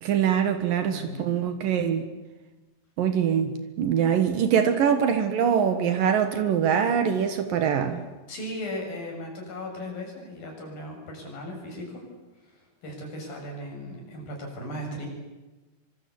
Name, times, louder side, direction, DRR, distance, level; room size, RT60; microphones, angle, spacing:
voice 1, 0.0-2.1 3.0-8.0, right 8 dB, 75° right, 8 dB, 3.2 m, -23 dB
voice 2, 0.8-1.4 8.3-12.0 12.4-15.1, left 1 dB, 85° left, 1 dB, 9.0 m, -37 dB
25.5 x 25.5 x 8.5 m, 1.1 s
omnidirectional pair, 4.1 m